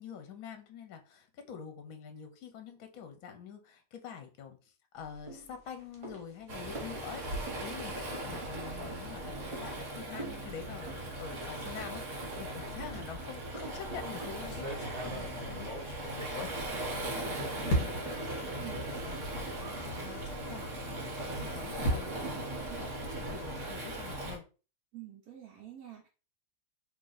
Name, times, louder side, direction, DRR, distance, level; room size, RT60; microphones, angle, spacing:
voice 1, 0.0-24.4, left 7 dB, 70° left, 6 dB, 1.1 m, -47 dB
sound 1, 5.0-14.7, right 2 dB, 30° right, 0.7 m, -49 dB
Waves surf, 6.5-24.4, right 1 dB, 55° right, 1.3 m, -38 dB
sound 2, 13.8-13.9 14.5-17.2 17.7-18.2 19.0-19.1 19.4-19.5 21.1-23.5, right 1 dB, 50° left, 1.4 m, -36 dB
voice 2, 15.0-15.7 18.6-18.9 22.7-22.9 24.9-26.1, right 13 dB, 75° right, -1 dB, 1.2 m, -49 dB
3.0 x 2.6 x 3.9 m, 0.34 s
omnidirectional pair, 1.6 m